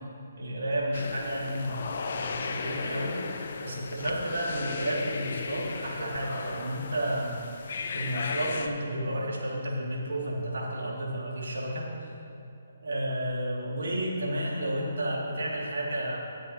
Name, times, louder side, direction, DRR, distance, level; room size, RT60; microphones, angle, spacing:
voice 1, 0.4-3.2 3.6-7.4 7.9-11.9 12.8-16.2, right 1 dB, 70° right, -4 dB, 2.7 m, -31 dB
sound 1, 0.9-8.7, left 4 dB, 55° left, 0.8 m, -36 dB
20.0 x 7.7 x 3.1 m, 2.5 s
figure-of-eight pair, 140°, 0 cm